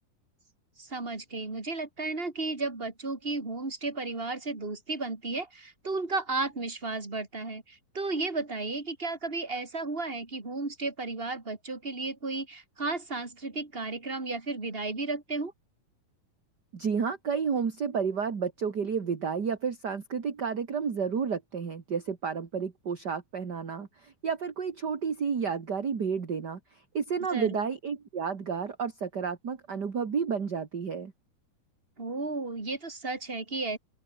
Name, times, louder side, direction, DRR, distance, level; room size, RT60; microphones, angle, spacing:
voice 1, 0.8-15.5 27.3-27.7 32.0-33.8, right 3 dB, 15° right, 3.4 m, -33 dB
voice 2, 16.7-31.1, right 6 dB, 35° right, 1.9 m, -31 dB
open air
omnidirectional pair, 4.5 m